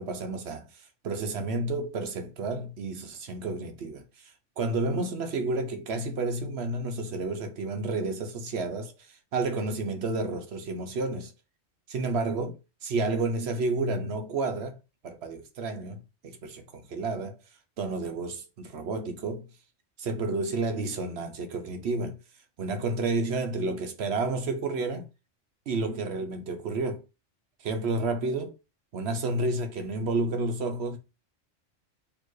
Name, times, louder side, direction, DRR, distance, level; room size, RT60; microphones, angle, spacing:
voice 1, 0.0-11.3 11.9-14.8 15.0-17.4 17.8-19.5 20.0-22.2 22.6-25.1 25.7-27.0 27.6-28.6 28.9-31.0, right 3 dB, 60° right, 0.9 m, -31 dB
4.4 x 2.9 x 3.1 m
omnidirectional pair, 1.3 m